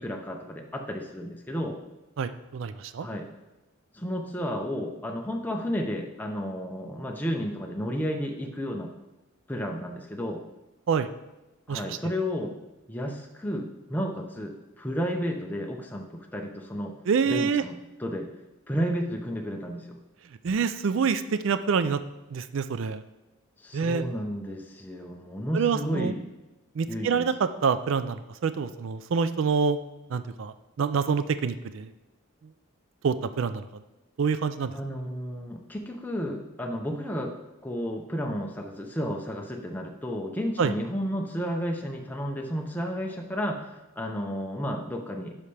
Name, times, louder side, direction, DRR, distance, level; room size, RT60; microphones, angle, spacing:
voice 1, 0.0-1.8 3.0-3.3 3.9-8.9 9.5-10.4 11.7-12.6 12.9-17.0 17.3-18.3 18.7-20.0 23.6-26.3 26.9-27.3 34.7-37.4 37.6-45.3, equal, 10° left, 1 dB, 0.6 m, -32 dB
voice 2, 2.2-3.1 10.9-11.1 11.7-12.0 17.1-17.6 20.4-22.0 22.3-23.0 23.7-24.0 25.5-26.1 26.8-29.8 30.1-31.9 33.0-33.7 34.2-34.7 40.6-40.7, right 6 dB, 60° right, 12 dB, 0.4 m, -26 dB
10.5 x 5.7 x 3.3 m, 1.0 s
head